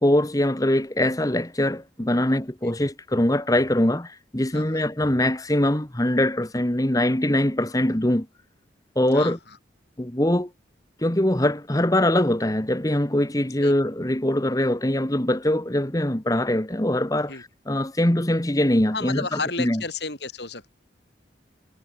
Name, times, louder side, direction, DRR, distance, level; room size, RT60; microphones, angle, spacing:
voice 1, 0.0-8.3 8.9-9.4 10.0-10.5 11.0-19.8, left 1 dB, 20° left, 1.3 m, -22 dB
voice 2, 4.5-4.8 9.1-9.4 13.6-13.8 17.3-17.4 18.9-20.7, left 3 dB, 65° left, 6.1 m, -32 dB
head